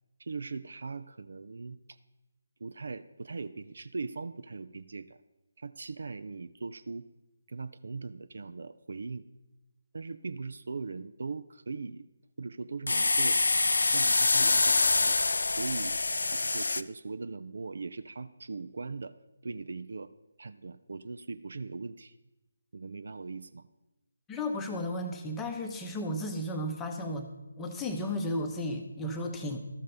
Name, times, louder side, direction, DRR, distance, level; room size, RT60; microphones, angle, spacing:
voice 1, 0.2-2.0 2.6-5.2 5.6-7.0 7.5-9.3 9.9-12.1 12.4-13.4 13.9-15.2 15.5-15.9 16.2-19.2 19.4-20.1 20.4-22.2 22.7-23.7, right 4 dB, 50° right, 12 dB, 0.4 m, -40 dB
sound 1, 12.9-16.8, left 3 dB, 60° left, 0.4 m, -25 dB
voice 2, 24.3-27.3 27.6-29.6, left 1 dB, 10° left, 4 dB, 0.8 m, -34 dB
13.0 x 6.5 x 5.3 m, 1.0 s
figure-of-eight pair, 150°, 0 cm